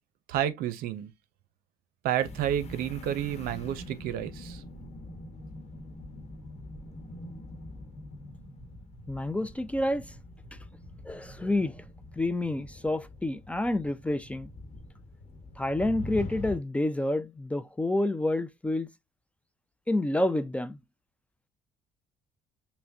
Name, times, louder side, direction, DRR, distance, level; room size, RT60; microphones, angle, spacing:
voice 1, 0.3-1.1 2.0-4.6, right 11 dB, 80° right, 0.6 m, -30 dB
sound 1, 2.2-16.6, left 1 dB, 45° left, 1.0 m, -44 dB
voice 2, 9.1-10.0 11.0-11.8 12.2-14.5 15.6-18.9 19.9-20.8, left 1 dB, 10° left, 0.3 m, -28 dB
5.6 x 2.1 x 2.6 m
cardioid pair, 120°, 15 cm